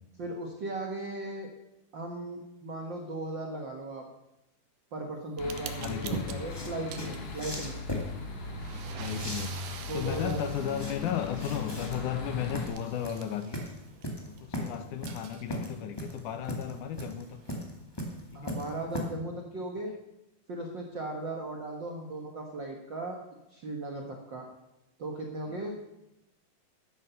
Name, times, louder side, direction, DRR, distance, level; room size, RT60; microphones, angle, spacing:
voice 1, 0.2-1.5 1.9-4.0 4.9-7.8 9.9-10.7 18.3-19.9 20.5-23.2 23.5-24.5 25.0-25.8, right 2 dB, 60° right, 1 dB, 1.2 m, -37 dB
sound 1, 5.4-12.7, left 3 dB, 55° left, 2.4 m, -39 dB
sound 2, 5.4-14.4 14.8-17.5, right 8 dB, 85° right, 2.7 m, -46 dB
voice 2, 5.8-6.4 8.7-9.5 9.9-13.6 14.2-17.8 18.4-18.5 25.5-25.6, left 10 dB, 75° left, 10 dB, 2.1 m, -35 dB
sound 3, 5.9-19.0, equal, 10° left, 1.1 m, -39 dB
12.5 x 10.0 x 5.7 m, 0.90 s
omnidirectional pair, 3.9 m